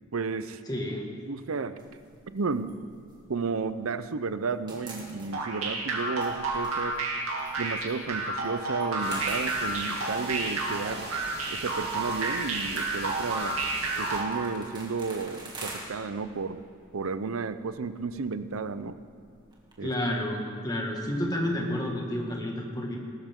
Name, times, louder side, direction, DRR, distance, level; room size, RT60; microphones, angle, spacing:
voice 1, 0.1-0.6 1.2-1.8 2.3-2.7 3.3-7.0 7.6-11.1 11.5-13.6 14.0-16.6 16.9-19.0 19.8-19.9, right 4 dB, 70° right, 12 dB, 0.6 m, -32 dB
voice 2, 0.7-1.1 19.8-23.0, left 1 dB, 20° left, -1 dB, 1.9 m, -30 dB
sound 1, 1.8-4.0 4.3-19.7, right 2 dB, 20° right, 2.4 m, -47 dB
sound 2, 5.3-14.5, right 3 dB, 85° right, 2.6 m, -30 dB
sound 3, 9.0-14.2, right 3 dB, 55° right, 2.7 m, -41 dB
19.5 x 13.0 x 3.7 m, 2.5 s
head